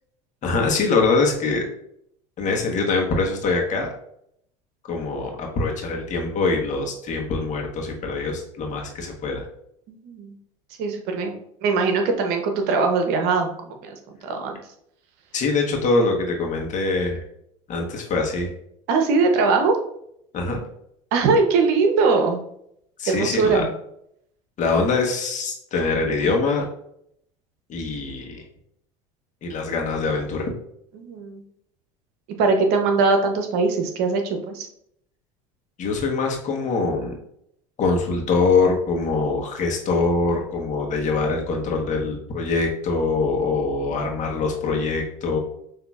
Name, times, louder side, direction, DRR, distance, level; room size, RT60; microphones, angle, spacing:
voice 1, 0.4-1.6 2.4-3.9 4.8-9.5 15.3-17.2 17.7-18.5 20.3-20.6 23.0-23.6 24.6-26.7 27.7-28.4 29.4-30.5 35.8-37.2 37.8-45.4, left 3 dB, 45° left, 1 dB, 1.2 m, -23 dB
voice 2, 9.9-10.3 10.8-13.9 14.2-14.6 18.9-19.8 21.1-22.4 23.1-23.7 30.9-31.4 32.4-34.7, right 4 dB, 65° right, 5 dB, 0.8 m, -21 dB
6.0 x 2.8 x 2.4 m, 0.72 s
hypercardioid pair, 85°, 18 cm